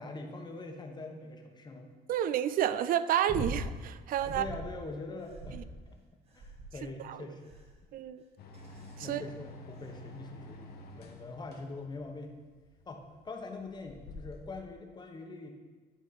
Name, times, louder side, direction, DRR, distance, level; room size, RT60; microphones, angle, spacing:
voice 1, 0.0-1.9 4.3-6.0 6.3-7.6 9.0-12.4 12.9-15.5, left 3 dB, 25° left, 3 dB, 1.0 m, -43 dB
voice 2, 2.1-4.4 7.1-7.2 7.9-8.2 9.0-9.2, right 10 dB, 55° right, 15 dB, 0.4 m, -30 dB
sound 1, 3.3-3.7 4.2-4.7 5.3-5.9 6.4-6.9 7.5-7.8 8.5-8.9 9.9-10.0, right 2 dB, 35° right, 1.2 m, -40 dB
sound 2, 8.4-14.6, left 2 dB, 65° left, 1.0 m, -50 dB
10.5 x 4.1 x 4.1 m, 1.4 s
cardioid pair, 110°, 17 cm